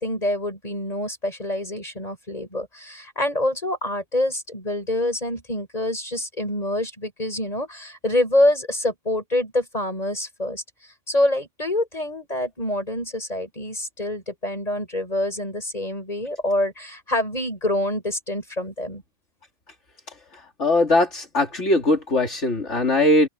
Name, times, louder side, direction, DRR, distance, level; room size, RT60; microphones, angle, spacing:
voice 1, 0.0-10.6 11.1-19.0, left 1 dB, 30° left, 7.8 m, -26 dB
voice 2, 20.6-23.3, left 2 dB, 75° left, 3.2 m, -20 dB
open air
omnidirectional pair, 1.2 m